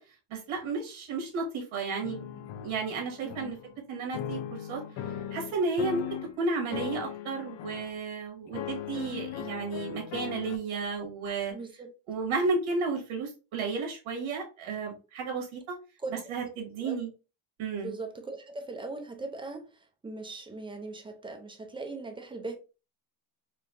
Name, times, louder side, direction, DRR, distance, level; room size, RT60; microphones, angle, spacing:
voice 1, 0.3-3.6 3.9-4.8 5.3-6.0 6.4-11.5 12.1-15.8 16.3-17.1 17.6-17.9, right 4 dB, 75° right, 2.0 m, -32 dB
sound 1, 2.0-3.8 4.1-6.4 6.7-8.0 8.5-10.6, left 10 dB, 65° left, 0.6 m, -38 dB
voice 2, 3.2-3.5 11.5-11.9 16.0-16.1 16.4-16.5 16.8-17.0 17.8-22.6, right 3 dB, 10° right, 0.4 m, -40 dB
4.5 x 2.8 x 2.5 m
cardioid pair, 155°, 49 cm